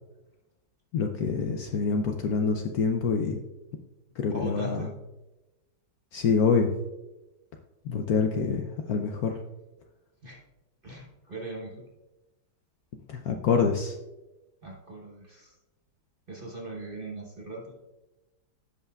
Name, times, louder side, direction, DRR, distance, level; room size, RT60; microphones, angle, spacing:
voice 1, 0.9-3.4 4.2-4.9 6.1-6.7 7.8-9.4 13.1-14.0, left 5 dB, 70° left, 4 dB, 0.9 m, -26 dB
voice 2, 4.3-4.9 10.2-10.4 10.8-11.8 14.6-15.6 16.3-17.7, right 1 dB, 40° right, -1 dB, 0.9 m, -39 dB
16.0 x 5.5 x 2.3 m, 1.1 s
omnidirectional pair, 2.0 m